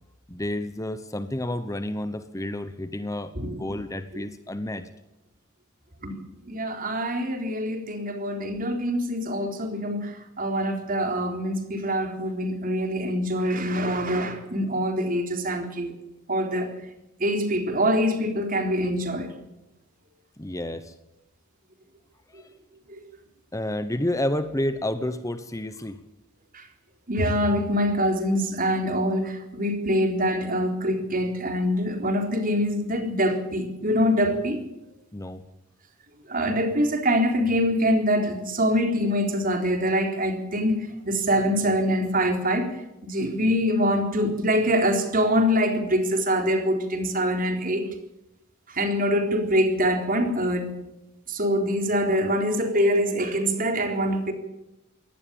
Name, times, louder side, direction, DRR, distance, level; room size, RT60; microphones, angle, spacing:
voice 1, 0.3-4.9 20.4-20.9 22.3-22.5 23.5-26.0 35.1-35.5, left 1 dB, 15° left, 1.1 m, -30 dB
voice 2, 6.5-15.9 16.3-16.8 17.2-19.3 22.9-23.0 26.5-26.6 27.1-34.6 36.3-42.8 43.0-47.9 48.7-50.7 51.3-54.3, equal, 40° right, 3.9 m, -24 dB
22.0 x 18.0 x 7.1 m
head